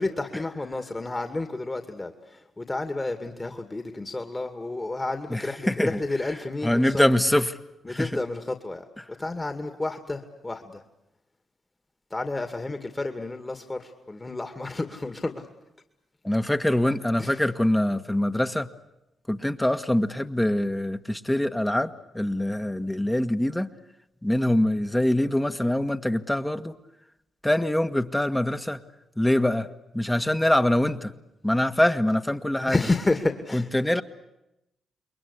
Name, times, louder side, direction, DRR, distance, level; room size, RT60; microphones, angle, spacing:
voice 1, 0.0-7.0 7.8-8.8 9.2-10.8 12.1-15.5 17.2-17.5 32.7-34.0, left 2 dB, 25° left, 7 dB, 2.3 m, -30 dB
voice 2, 5.3-6.0 6.6-7.6 7.9-8.1 16.2-18.7 19.3-23.7 24.2-26.7 27.4-28.8 29.2-29.7 29.9-31.1 31.4-32.8 33.5-34.0, left 1 dB, 10° left, 8 dB, 1.6 m, -24 dB
28.5 x 22.0 x 8.4 m, 0.88 s
hypercardioid pair, 40°, 0 cm